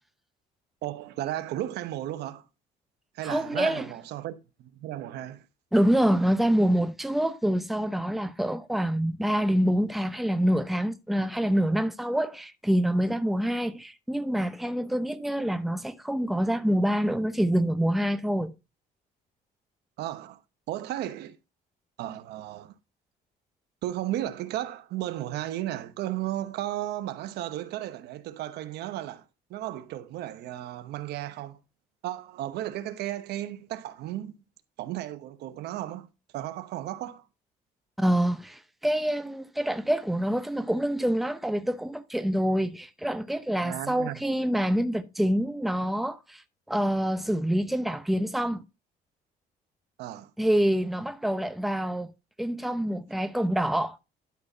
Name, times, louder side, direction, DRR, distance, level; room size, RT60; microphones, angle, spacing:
voice 1, 0.8-2.4 3.1-5.4 20.0-20.4 20.7-21.4 22.0-22.7 23.8-29.2 29.5-31.6 32.0-34.3 34.8-36.1 36.3-37.2 43.6-44.2 50.0-50.3, right 13 dB, 80° right, 0.9 m, -34 dB
voice 2, 3.2-3.9 5.7-18.5 38.0-46.4 46.7-48.6 50.4-52.1 52.4-54.0, equal, ahead, 0.7 m, -26 dB
12.0 x 4.2 x 3.9 m
cardioid pair, 110°, 17 cm